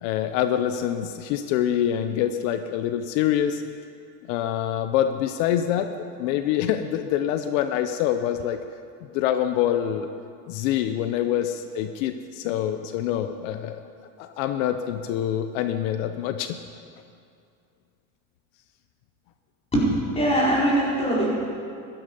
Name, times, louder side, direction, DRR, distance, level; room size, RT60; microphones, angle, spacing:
voice 1, 0.0-3.6 4.3-5.9 6.2-8.6 9.1-10.1 10.5-13.8 14.2-16.6, left 10 dB, 75° left, 9 dB, 0.8 m, -25 dB
voice 2, 20.1-21.3, right 1 dB, 15° left, -6 dB, 4.5 m, -21 dB
15.0 x 12.5 x 5.5 m, 2.4 s
supercardioid pair, 135°, 39 cm